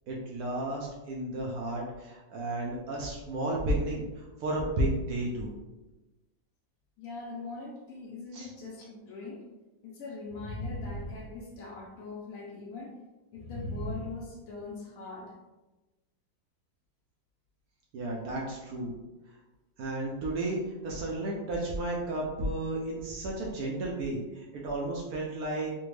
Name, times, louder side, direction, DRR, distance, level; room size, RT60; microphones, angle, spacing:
voice 1, 0.1-5.5 8.3-8.5 17.9-18.9 19.8-25.7, right 1 dB, 75° right, -3 dB, 0.8 m, -33 dB
voice 2, 7.0-9.5 9.8-13.0 13.3-15.4 18.4-18.5, left 3 dB, 85° left, -2 dB, 0.7 m, -42 dB
sound 1, 8.5-8.6 10.3-11.9 13.3-14.7, equal, 70° left, 1.3 m, -39 dB
3.3 x 2.1 x 3.1 m, 1.1 s
omnidirectional pair, 2.1 m